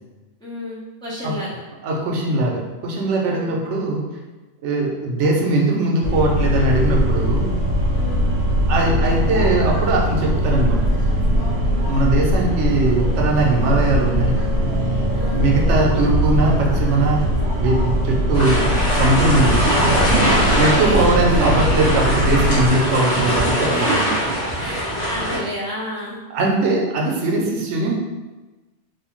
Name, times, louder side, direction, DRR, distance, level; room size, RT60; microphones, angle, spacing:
voice 1, 0.4-1.6 3.2-3.5 7.9-8.3 11.7-11.9 15.1-15.5 15.9-16.1 20.4-21.0 23.7-24.0 24.6-26.2, equal, 5° left, -9 dB, 0.5 m, -32 dB
voice 2, 1.8-4.0 4.6-7.5 8.7-10.9 11.9-14.4 15.3-17.3 17.6-18.6 18.9-19.7 20.6-24.1 26.3-27.9, right 2 dB, 90° right, -1 dB, 0.9 m, -20 dB
sound 1, 6.0-22.7, equal, 55° right, 0.7 m, -20 dB
sound 2, 18.3-25.4, equal, 65° left, 1.3 m, -21 dB
3.0 x 2.0 x 2.9 m, 1.2 s
omnidirectional pair, 1.2 m